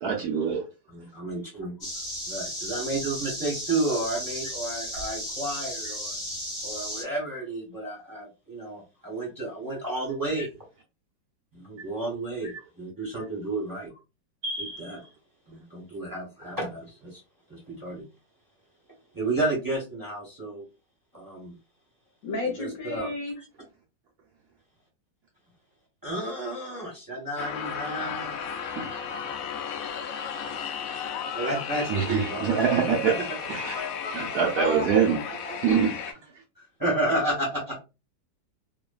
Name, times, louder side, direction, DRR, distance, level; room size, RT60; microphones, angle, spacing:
voice 1, 0.0-0.6 14.4-15.0 28.7-28.9 31.9-33.1 33.5-33.7 34.1-35.2 35.6-36.1, right 6 dB, 70° right, 1.0 m, -25 dB
voice 2, 0.9-1.7 2.3-6.2 6.6-10.5 11.5-13.9 14.6-15.0 15.5-17.2 17.5-18.0 19.1-20.7 21.1-21.5 22.4-23.1 26.0-28.4 30.9-31.1 31.3-33.2 33.7-33.8 36.5-37.8, right 2 dB, 15° right, 0.8 m, -31 dB
sound 1, 1.8-7.0, equal, 35° left, 1.3 m, -34 dB
voice 3, 22.2-23.4 34.6-35.8, left 1 dB, 60° left, 1.1 m, -33 dB
sound 2, 27.4-36.1, left 7 dB, 85° left, 0.7 m, -34 dB
3.0 x 2.1 x 2.3 m
omnidirectional pair, 2.0 m